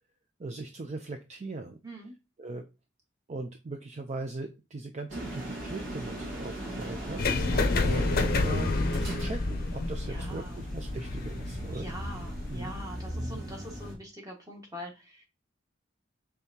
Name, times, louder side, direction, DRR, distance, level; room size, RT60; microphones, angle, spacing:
voice 1, 0.4-1.8 2.4-2.6 3.3-8.7 9.0-11.9 12.5-12.7 13.2-13.4, right 3 dB, 35° right, 6 dB, 0.5 m, -39 dB
voice 2, 1.8-2.1 10.1-10.6 11.7-15.2, equal, 20° right, 0 dB, 1.4 m, -43 dB
sound 1, 5.1-13.9, right 1 dB, 70° right, 2.0 m, -39 dB
sound 2, 7.2-13.1, left 3 dB, 50° left, 0.6 m, -30 dB
5.4 x 3.5 x 2.8 m, 0.27 s
head